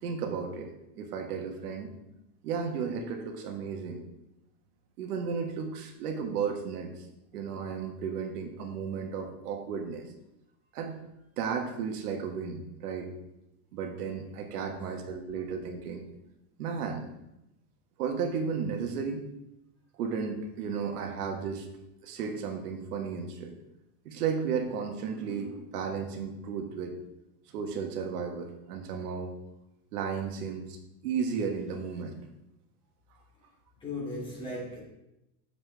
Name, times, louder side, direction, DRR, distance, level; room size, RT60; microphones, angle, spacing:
voice 1, 0.0-2.0 2.4-4.0 5.0-7.0 7.3-10.0 10.7-11.0 11.4-13.1 13.7-16.0 16.6-17.1 18.0-19.3 20.0-21.7 22.0-23.5 24.0-27.0 27.5-29.3 29.9-30.8 31.0-32.2, right 6 dB, 80° right, 4 dB, 1.6 m, -34 dB
voice 2, 14.6-14.9 33.8-34.8, left 2 dB, 10° left, -6 dB, 2.5 m, -37 dB
7.6 x 6.9 x 3.4 m, 0.89 s
supercardioid pair, 170°, 45 cm